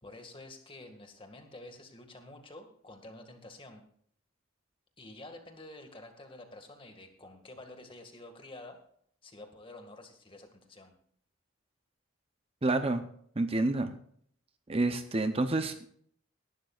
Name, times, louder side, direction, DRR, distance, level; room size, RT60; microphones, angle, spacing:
voice 1, 0.0-3.8 5.0-8.8 9.2-10.9, left 2 dB, 25° left, 5 dB, 1.9 m, -49 dB
voice 2, 12.6-13.1 13.4-13.9 14.7-15.9, right 2 dB, 30° right, 8 dB, 0.7 m, -28 dB
18.0 x 12.0 x 2.4 m, 0.62 s
head